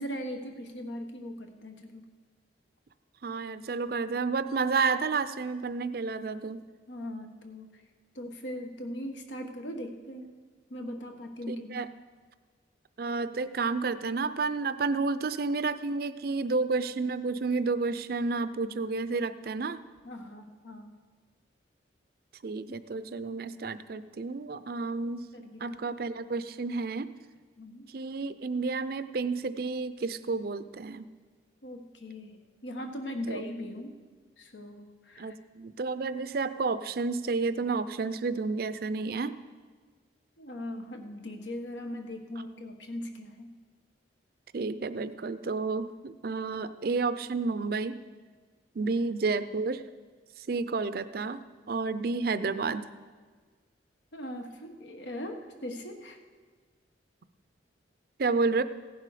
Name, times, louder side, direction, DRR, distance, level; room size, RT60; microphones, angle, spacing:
voice 1, 0.0-2.1 6.9-7.8 8.1-10.3 10.7-11.9 20.0-20.9 25.3-25.6 27.6-27.9 31.6-34.0 34.4-35.3 40.4-43.5 48.8-48.9 54.1-56.2, left 1 dB, 85° left, 5 dB, 1.3 m, -39 dB
voice 2, 3.2-6.6 11.5-11.9 13.0-19.8 22.4-25.3 25.6-27.1 27.9-31.1 33.3-33.4 35.2-39.4 44.5-48.0 48.7-49.8 50.4-52.9 58.2-58.6, right 4 dB, 55° right, 13 dB, 0.5 m, -31 dB
16.0 x 11.0 x 4.9 m, 1.5 s
head